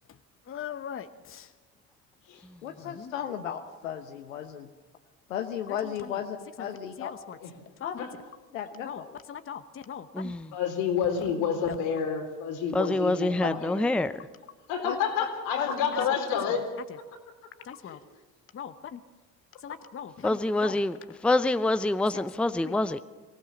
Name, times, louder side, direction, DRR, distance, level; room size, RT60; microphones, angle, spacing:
voice 1, 0.5-1.5 2.8-3.1 5.7-6.2 6.6-6.7 7.0-7.4 7.8-8.1 8.8-10.3 11.2-11.3 11.7-11.8 16.3-16.6 16.9-17.0 17.6-18.0 18.5-19.0 19.6-20.8 22.1-22.2 22.6-22.8, left 8 dB, 35° left, 10 dB, 1.0 m, -41 dB
voice 2, 2.6-4.7 5.3-7.1 7.8-8.0 8.5-9.2 13.4-13.5 14.8-15.0 15.5-16.1, left 9 dB, 90° left, 6 dB, 1.0 m, -34 dB
voice 3, 10.5-14.0 14.7-16.7 17.9-18.0, left 7 dB, 75° left, 3 dB, 3.8 m, -29 dB
voice 4, 12.7-14.1 20.2-21.0 21.2-23.0, left 2 dB, 5° left, 12 dB, 0.7 m, -26 dB
23.5 x 16.5 x 7.2 m, 1.2 s
hypercardioid pair, 65°, 39 cm